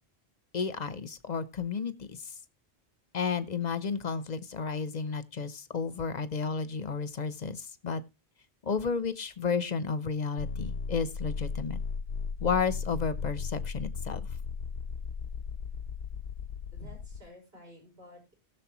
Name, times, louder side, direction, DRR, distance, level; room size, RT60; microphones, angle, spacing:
voice 1, 0.5-2.2 3.1-8.0 8.6-11.8 12.4-14.2, left 5 dB, 45° left, 0.9 m, -32 dB
sound 1, 10.4-17.2, left 5 dB, 70° left, 1.0 m, -36 dB
voice 2, 16.7-18.3, equal, 65° right, 5.9 m, -51 dB
19.5 x 6.7 x 3.0 m
omnidirectional pair, 1.1 m